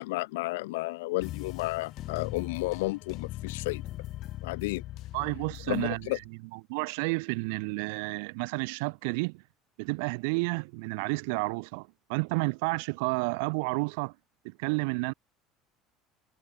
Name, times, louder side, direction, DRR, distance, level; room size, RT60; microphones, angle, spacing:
voice 1, 0.0-3.8 4.4-4.8 5.7-6.2, left 21 dB, 80° left, 2.3 m, -32 dB
sound 1, 1.2-6.2, left 15 dB, 60° left, 0.8 m, -40 dB
voice 2, 5.1-9.4 9.8-14.1 14.4-15.1, right 32 dB, 75° right, 2.4 m, -31 dB
hypercardioid pair, 75°, 0 cm